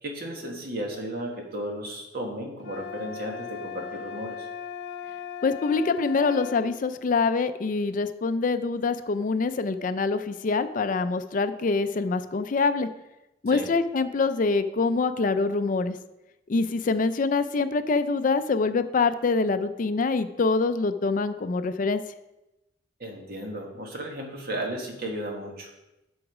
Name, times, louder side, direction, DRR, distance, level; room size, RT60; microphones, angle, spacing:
voice 1, 0.0-4.5 13.5-13.7 23.0-25.7, right 1 dB, 55° right, 1 dB, 1.6 m, -34 dB
sound 1, 2.6-6.8, left 7 dB, 65° left, 1.1 m, -38 dB
voice 2, 5.4-12.9 13.4-16.0 16.5-22.0, left 4 dB, 45° left, 11 dB, 0.4 m, -25 dB
7.8 x 6.3 x 4.9 m, 0.96 s
head